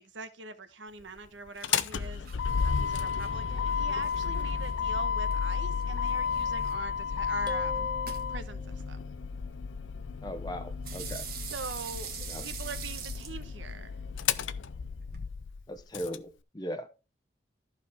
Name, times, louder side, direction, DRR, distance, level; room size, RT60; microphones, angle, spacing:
voice 1, 0.0-7.9 8.3-9.0 11.5-12.1 12.4-14.0, right 3 dB, 80° right, 1.1 m, -43 dB
sound 1, 1.0-15.2, right 7 dB, 50° right, 1.5 m, -47 dB
Motor vehicle (road), 1.5-16.2, left 6 dB, 85° left, 0.6 m, -32 dB
sound 2, 7.5-9.0, equal, 25° right, 0.9 m, -43 dB
voice 2, 10.2-11.3 12.3-12.5 15.7-16.9, equal, 20° left, 0.8 m, -38 dB
14.0 x 5.0 x 3.5 m
head